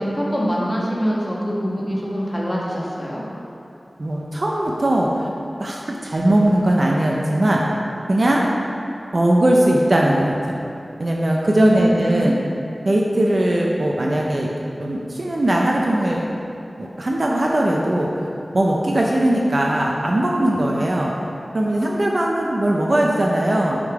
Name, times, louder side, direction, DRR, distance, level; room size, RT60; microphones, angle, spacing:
voice 1, 0.0-3.2 11.5-12.3, equal, 25° left, -5 dB, 1.3 m, -24 dB
voice 2, 4.0-5.3 5.6-7.6 8.1-8.4 9.1-10.6 11.0-12.4 12.9-14.5 14.8-16.2 16.8-18.1 18.5-21.1 21.5-23.8, right 1 dB, 55° right, -2 dB, 0.6 m, -19 dB
7.7 x 3.8 x 4.8 m, 2.7 s
wide cardioid pair, 75°, 0 cm